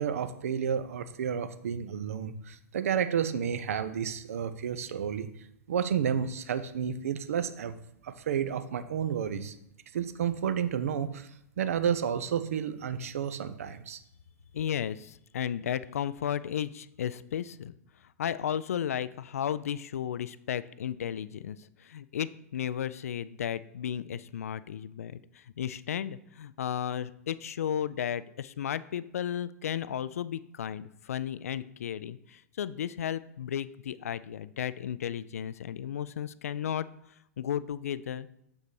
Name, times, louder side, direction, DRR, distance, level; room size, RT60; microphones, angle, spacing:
voice 1, 0.0-5.3 5.7-7.7 8.0-9.5 9.9-11.3 11.6-14.0, right 8 dB, 60° right, 12 dB, 0.6 m, -31 dB
voice 2, 14.5-17.7 18.2-36.9 37.4-38.3, left 9 dB, 65° left, 16 dB, 0.3 m, -34 dB
6.8 x 5.4 x 4.7 m, 0.77 s
figure-of-eight pair, 100°, 9 cm